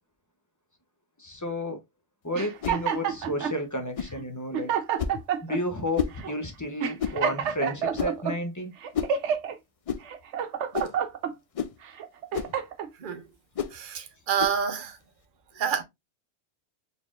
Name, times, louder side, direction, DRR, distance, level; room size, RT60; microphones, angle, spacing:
voice 1, 1.2-1.8 2.2-4.7 5.4-8.7, left 1 dB, 20° left, 0.8 m, -32 dB
sound 1, 2.3-3.6 4.2-4.3 4.5-5.6 6.2-6.3 6.8-8.3 8.8-9.5 10.0-11.3 11.9-12.9, right 8 dB, 85° right, 1.0 m, -28 dB
sound 2, 2.6-2.8 4.0-4.2 5.0-5.2 6.0-6.2 7.0-7.2 8.0-8.2 8.9-9.2 9.9-10.0 10.7-11.0 11.5-11.8 12.3-12.6 13.6-13.8 14.4-14.6, left 7 dB, 70° left, 0.3 m, -30 dB
voice 2, 13.7-15.0 15.5-15.8, right 7 dB, 50° right, 0.9 m, -28 dB
4.3 x 3.5 x 2.4 m
omnidirectional pair, 1.2 m